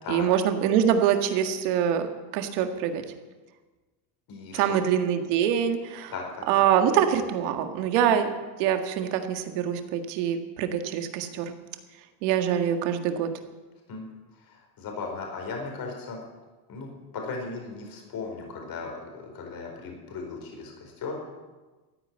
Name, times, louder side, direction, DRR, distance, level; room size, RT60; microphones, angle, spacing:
voice 1, 0.1-3.0 4.5-6.1 6.5-8.3 8.6-11.5 12.2-13.3, right 9 dB, 80° right, 6 dB, 2.0 m, -24 dB
voice 2, 4.3-4.6 6.1-6.6 13.9-14.1 14.4-16.2 16.7-21.3, left 4 dB, 45° left, 1 dB, 4.7 m, -37 dB
14.0 x 9.8 x 8.9 m, 1.2 s
supercardioid pair, 120°, 47 cm